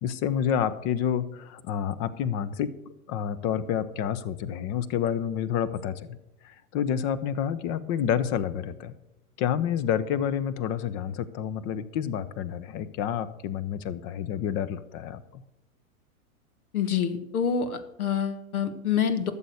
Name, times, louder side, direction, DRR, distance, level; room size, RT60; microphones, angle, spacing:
voice 1, 0.0-2.8 3.1-6.2 6.4-8.9 9.4-15.4, left 9 dB, 35° left, 16 dB, 0.8 m, -29 dB
voice 2, 16.7-19.3, left 7 dB, 75° left, 11 dB, 1.4 m, -27 dB
12.5 x 7.2 x 6.4 m, 0.90 s
hypercardioid pair, 110°, 43 cm